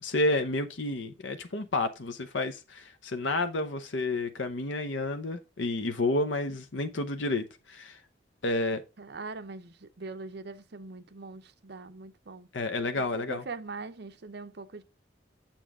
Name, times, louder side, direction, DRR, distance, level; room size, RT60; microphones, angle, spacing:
voice 1, 0.0-8.0 8.4-8.8 12.5-13.4, left 2 dB, 80° left, 0.8 m, -30 dB
voice 2, 9.0-12.5 12.9-14.8, right 3 dB, 60° right, 0.8 m, -42 dB
7.5 x 7.1 x 3.6 m
head